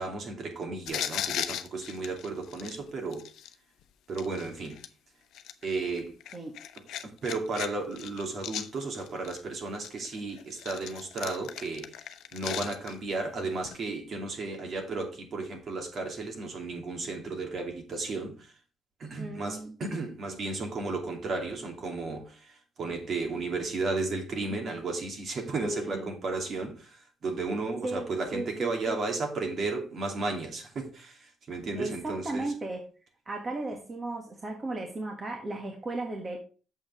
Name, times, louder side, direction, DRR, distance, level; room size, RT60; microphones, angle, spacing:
voice 1, 0.0-3.2 4.1-4.8 5.6-6.1 7.2-11.9 12.3-18.5 19.0-32.5, right 3 dB, 55° right, 2.7 m, -34 dB
sound 1, 0.9-3.5 4.1-4.9 5.3-7.7 7.9-9.4 9.8-13.1 13.6-13.8, left 10 dB, 85° left, 0.7 m, -37 dB
voice 2, 19.2-19.7 25.6-26.2 27.8-28.1 28.3-29.0 31.7-32.8 33.2-36.4, right 2 dB, 30° right, 1.6 m, -35 dB
7.3 x 5.7 x 5.5 m
cardioid pair, 115°, 0 cm